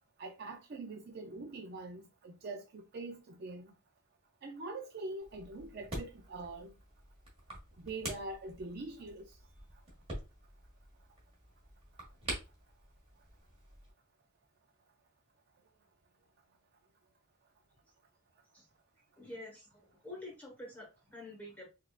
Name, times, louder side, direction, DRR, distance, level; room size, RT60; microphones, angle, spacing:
voice 1, 0.2-3.7 4.4-6.7 7.8-9.2, right 2 dB, 45° right, 0.4 m, -43 dB
sound 1, 5.2-13.9, right 1 dB, 25° right, 1.6 m, -47 dB
voice 2, 19.2-21.7, left 1 dB, 5° left, 1.1 m, -48 dB
5.3 x 2.5 x 2.4 m
head